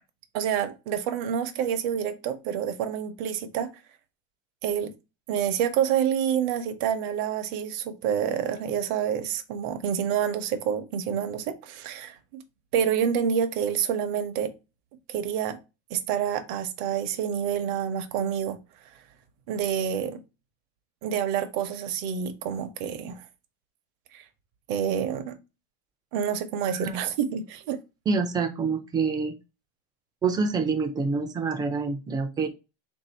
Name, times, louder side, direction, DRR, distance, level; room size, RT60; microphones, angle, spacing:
voice 1, 0.3-3.7 4.6-4.9 5.3-12.4 12.7-14.5 15.1-15.6 15.9-18.6 19.5-20.2 21.0-23.3 24.1-24.2 24.7-25.4 26.1-27.8, right 8 dB, 55° right, 0.7 m, -28 dB
voice 2, 26.6-27.0 28.1-29.4 30.2-32.5, right 4 dB, 15° right, 0.4 m, -27 dB
3.6 x 2.7 x 4.3 m
supercardioid pair, 150°, 31 cm